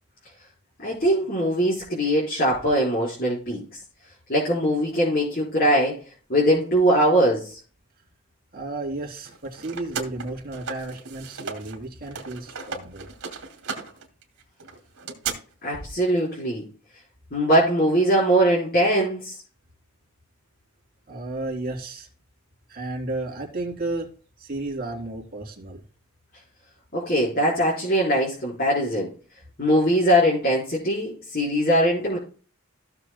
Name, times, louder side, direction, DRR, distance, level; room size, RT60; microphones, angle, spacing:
voice 1, 0.8-3.6 4.3-6.0 6.3-7.6 15.6-16.6 17.3-19.3 26.9-29.1 29.6-32.2, equal, 40° left, -6 dB, 4.1 m, -21 dB
voice 2, 8.5-13.1 21.1-22.1 22.7-24.1 24.4-25.8, right 2 dB, 40° right, 0 dB, 2.9 m, -33 dB
sound 1, 9.2-11.8 12.0-15.3, right 5 dB, 75° right, 2.5 m, -35 dB
16.0 x 6.9 x 2.2 m, 0.38 s
head